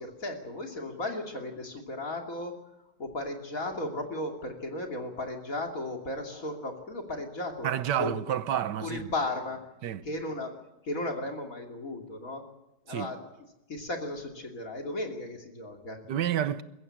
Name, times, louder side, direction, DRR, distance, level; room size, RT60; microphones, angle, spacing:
voice 1, 0.0-2.6 3.0-8.1 8.8-9.6 10.0-10.5 10.8-12.4 12.9-13.3 13.7-16.0, left 2 dB, 50° left, 3.1 m, -35 dB
voice 2, 7.6-9.1 9.8-10.0 12.9-13.1 16.1-16.6, right 10 dB, 70° right, 1.5 m, -29 dB
22.0 x 15.0 x 8.7 m
omnidirectional pair, 2.0 m